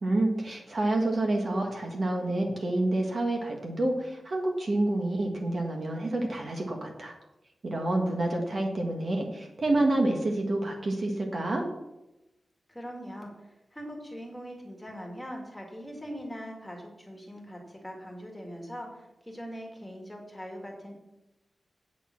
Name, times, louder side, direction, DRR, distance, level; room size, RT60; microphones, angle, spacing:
voice 1, 0.0-7.1 7.6-11.6, right 2 dB, 40° right, 1 dB, 1.6 m, -28 dB
voice 2, 12.7-20.9, equal, 5° left, 0 dB, 2.1 m, -41 dB
8.7 x 6.9 x 7.3 m, 0.96 s
wide cardioid pair, 175°, 0 cm